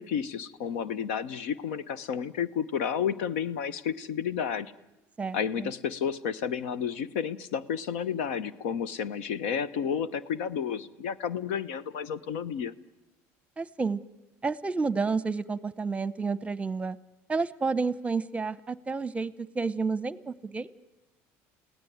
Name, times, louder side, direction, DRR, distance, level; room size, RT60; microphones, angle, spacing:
voice 1, 0.0-4.7 5.3-12.7, left 7 dB, 90° left, 17 dB, 0.9 m, -31 dB
voice 2, 5.2-5.7 13.6-14.0 14.4-17.0 17.3-20.7, right 4 dB, 20° right, 17 dB, 0.8 m, -30 dB
29.5 x 17.5 x 9.4 m, 1.0 s
supercardioid pair, 110°, 7 cm